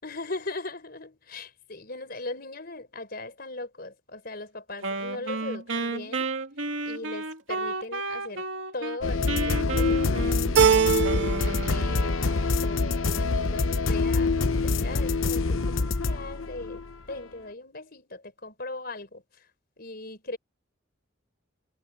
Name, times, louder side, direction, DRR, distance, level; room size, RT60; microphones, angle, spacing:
voice 1, 0.0-6.3 6.8-8.5 8.7-12.3 12.6-16.8 17.1-19.5 19.8-20.4, left 2 dB, 50° left, 4.4 m, -39 dB
Wind instrument woodwind instrument, 4.8-9.0 9.3-12.2, right 3 dB, 75° right, 2.5 m, -32 dB
sound 1, 9.0-17.1, left 3 dB, 85° left, 0.9 m, -26 dB
Keyboard (musical), 10.6-11.7 12.0-12.7, right 7 dB, 60° right, 0.5 m, -23 dB
head